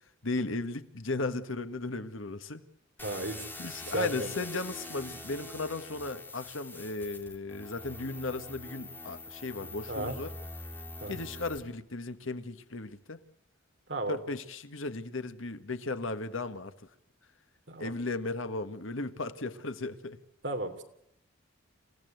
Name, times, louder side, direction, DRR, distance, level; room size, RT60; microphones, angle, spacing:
voice 1, 0.2-2.6 3.6-10.3 11.1-13.2 14.1-16.7 17.8-20.2, left 3 dB, 75° left, 1.6 m, -36 dB
sound 1, 3.0-11.6, left 2 dB, 10° left, 3.0 m, -44 dB
voice 2, 3.0-3.5 3.9-4.4 9.9-10.2 11.0-11.2 13.9-14.2 17.7-17.9 20.4-20.8, right 1 dB, 60° right, 3.2 m, -34 dB
28.5 x 16.5 x 7.9 m
head